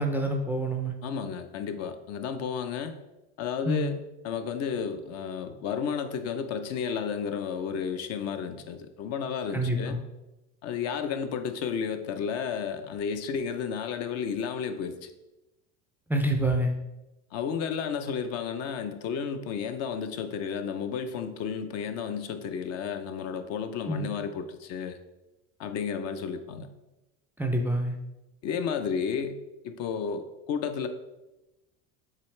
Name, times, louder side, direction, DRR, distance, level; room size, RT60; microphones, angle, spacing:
voice 1, 0.0-0.9 3.7-4.0 9.5-10.0 16.1-16.7 23.9-24.1 27.4-28.0, right 1 dB, 5° right, 2 dB, 0.4 m, -27 dB
voice 2, 1.0-3.0 3.4-10.0 10.6-15.1 17.3-25.0 25.6-26.7 28.4-30.9, left 6 dB, 50° left, 8 dB, 0.6 m, -32 dB
7.6 x 3.8 x 3.2 m, 1.0 s
supercardioid pair, 125°, 33 cm